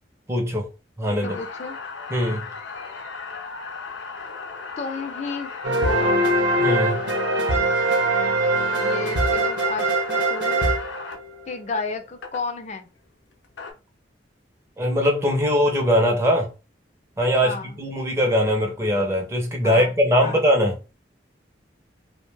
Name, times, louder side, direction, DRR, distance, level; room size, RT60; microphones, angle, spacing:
voice 1, 0.3-0.7 1.0-1.4 2.1-2.5 6.6-7.0 14.8-16.5 17.2-20.7, equal, 15° right, 0.5 m, -21 dB
sound 1, 1.2-11.2 12.2-12.4 13.3-13.7, left 4 dB, 80° left, 0.6 m, -36 dB
voice 2, 1.2-1.8 4.8-6.2 8.8-10.7 11.5-12.9 17.4-17.8 19.6-20.0 20.2-20.4, left 3 dB, 35° left, 0.4 m, -32 dB
sound 2, 5.6-11.5, right 2 dB, 65° right, 0.7 m, -22 dB
2.6 x 2.1 x 3.2 m
head